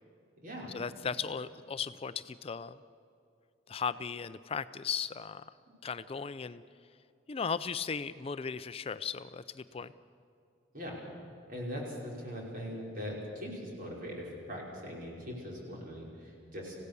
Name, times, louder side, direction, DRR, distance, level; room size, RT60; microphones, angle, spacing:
voice 1, 0.7-2.7 3.7-5.5 5.8-6.6 7.3-9.9, left 6 dB, 30° left, 14 dB, 0.4 m, -36 dB
voice 2, 11.5-16.8, equal, 50° right, -2 dB, 5.4 m, -41 dB
26.0 x 16.5 x 6.9 m, 2.5 s
head